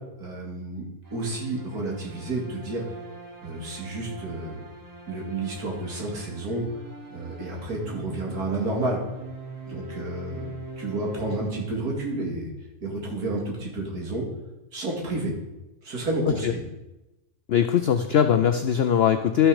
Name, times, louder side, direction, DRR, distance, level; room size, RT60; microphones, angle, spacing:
voice 1, 0.2-0.8 1.1-2.8 3.4-4.6 5.1-6.7 7.1-9.0 9.7-12.5 12.8-14.3 14.7-15.3 15.8-16.6, right 2 dB, 75° right, -2 dB, 2.7 m, -30 dB
sound 1, 1.0-12.2, right 2 dB, 15° right, 1.2 m, -42 dB
voice 2, 17.5-19.5, left 8 dB, 80° left, 9 dB, 0.5 m, -21 dB
12.5 x 6.2 x 4.9 m, 1.0 s
omnidirectional pair, 1.6 m